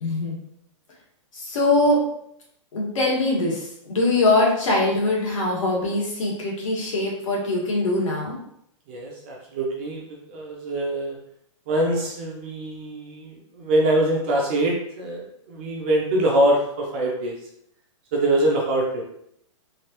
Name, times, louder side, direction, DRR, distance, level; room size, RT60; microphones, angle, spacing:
voice 1, 0.0-0.4 1.3-2.0 2.7-3.6 3.9-8.3, left 2 dB, 80° left, -3 dB, 1.5 m, -22 dB
voice 2, 8.9-10.0 10.3-11.2 11.7-17.3 18.1-19.0, right 1 dB, 20° right, -1 dB, 0.4 m, -23 dB
3.3 x 2.4 x 2.9 m, 0.73 s
hypercardioid pair, 180°, 16 cm